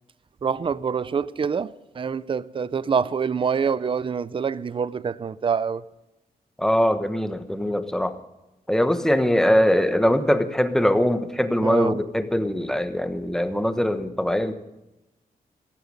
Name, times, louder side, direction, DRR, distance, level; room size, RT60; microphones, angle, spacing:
voice 1, 0.4-5.8 11.6-12.0, right 6 dB, 35° right, 0.5 m, -26 dB
voice 2, 6.6-8.2 8.7-14.5, equal, 5° left, 1.1 m, -22 dB
17.5 x 14.0 x 5.3 m
wide cardioid pair, 115°, 16 cm